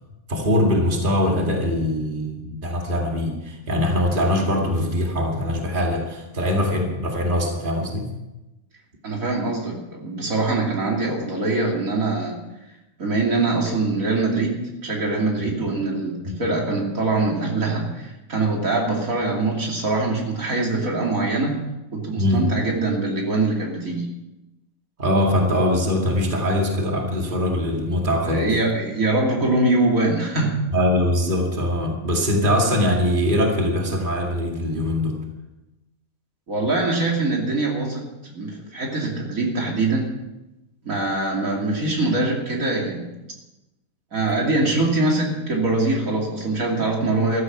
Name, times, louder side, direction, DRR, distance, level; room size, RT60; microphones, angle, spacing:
voice 1, 0.3-8.1 16.2-16.4 22.1-22.4 25.0-28.5 30.7-35.2, left 1 dB, 35° right, 0 dB, 2.5 m, -22 dB
voice 2, 9.0-12.4 13.0-14.6 14.8-21.6 21.9-24.1 28.2-30.6 36.5-40.1 40.8-43.1 44.1-47.4, right 2 dB, 75° right, -1 dB, 3.1 m, -23 dB
14.5 x 13.5 x 6.1 m, 1.0 s
omnidirectional pair, 1.4 m